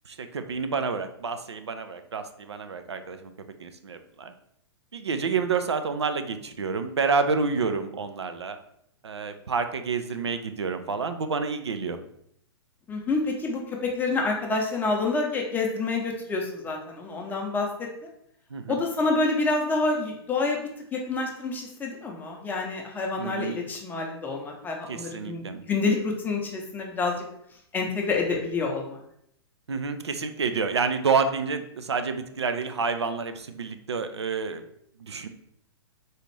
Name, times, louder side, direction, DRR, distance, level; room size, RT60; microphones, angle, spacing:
voice 1, 0.1-3.3 3.6-4.3 4.9-8.6 9.0-12.0 18.5-18.8 23.2-23.6 24.9-25.6 29.7-34.6 35.0-35.3, right 5 dB, 80° right, 8 dB, 0.4 m, -29 dB
voice 2, 12.9-17.7 18.7-27.1 27.7-29.0, left 3 dB, 15° left, 1 dB, 0.6 m, -28 dB
4.1 x 2.4 x 3.1 m, 0.72 s
figure-of-eight pair, 115°, 14 cm